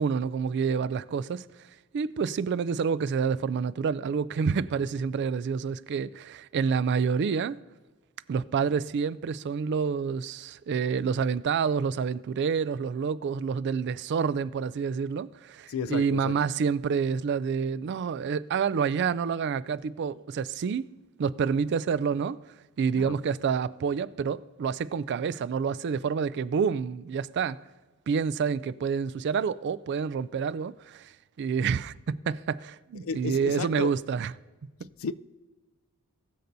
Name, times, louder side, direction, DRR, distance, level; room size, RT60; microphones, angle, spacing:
voice 1, 0.0-1.5 1.9-7.6 8.3-20.9 21.2-22.4 22.8-27.6 28.1-31.1 31.4-34.3, right 6 dB, 50° right, 0.3 m, -28 dB
voice 2, 15.7-16.3 22.9-23.2 33.0-33.9 35.0-35.1, left 5 dB, 65° left, 0.4 m, -33 dB
20.0 x 6.8 x 2.7 m
head